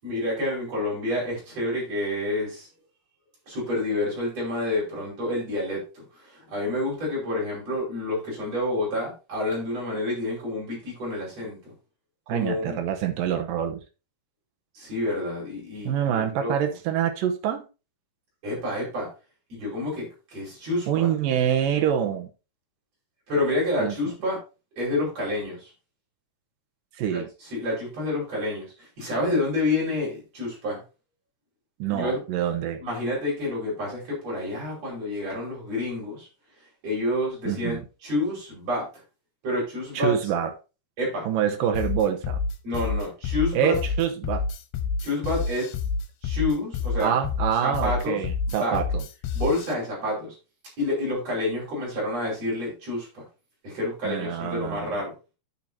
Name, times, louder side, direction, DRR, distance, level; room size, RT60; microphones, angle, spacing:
voice 1, 0.0-2.7 3.5-11.7 12.3-12.8 14.7-16.7 18.4-19.1 19.5-21.1 23.3-24.4 24.8-25.7 27.1-27.2 27.5-30.8 31.9-32.2 32.8-36.3 36.8-38.8 39.4-40.1 41.0-41.3 42.6-43.8 45.0-45.7 46.2-47.2 47.6-48.2 48.5-48.8 49.3-50.3 50.8-53.2 53.6-55.1, left 1 dB, 40° right, -5 dB, 6.1 m, -28 dB
voice 2, 12.3-13.8 15.8-17.6 20.9-22.3 23.8-24.0 27.0-27.3 31.8-32.8 37.5-37.8 39.9-40.5 41.3-42.4 43.5-44.5 47.0-49.0 54.0-55.0, right 9 dB, 70° right, 5 dB, 2.4 m, -26 dB
sound 1, 41.7-49.7, left 4 dB, 90° left, 2.8 m, -28 dB
10.5 x 7.5 x 2.7 m, 0.31 s
omnidirectional pair, 4.4 m